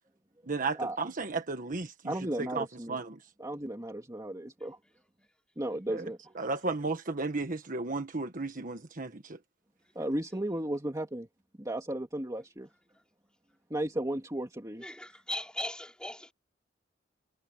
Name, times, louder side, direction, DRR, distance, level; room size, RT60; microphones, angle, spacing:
voice 1, 0.5-3.2 5.9-6.1 6.4-9.4, right 3 dB, 45° right, 1.4 m, -34 dB
voice 2, 2.0-3.0 3.4-4.8 5.6-6.4 9.9-11.3 11.6-12.7 13.7-14.9, right 1 dB, 20° right, 2.4 m, -35 dB
voice 3, 14.8-16.3, left 1 dB, 5° left, 5.4 m, -38 dB
head